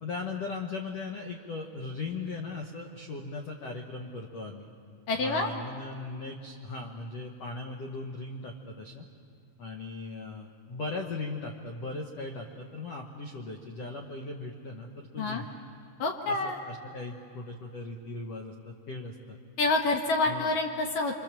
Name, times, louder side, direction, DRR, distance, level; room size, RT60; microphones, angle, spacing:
voice 1, 0.0-4.7 5.2-9.0 9.6-15.5 16.3-19.4 20.3-20.5, left 3 dB, 80° left, 2 dB, 1.4 m, -38 dB
voice 2, 5.1-5.5 15.2-15.4 16.0-16.6 19.6-21.2, left 3 dB, 65° left, 3 dB, 2.3 m, -27 dB
26.5 x 26.0 x 7.5 m, 2.4 s
omnidirectional pair, 5.1 m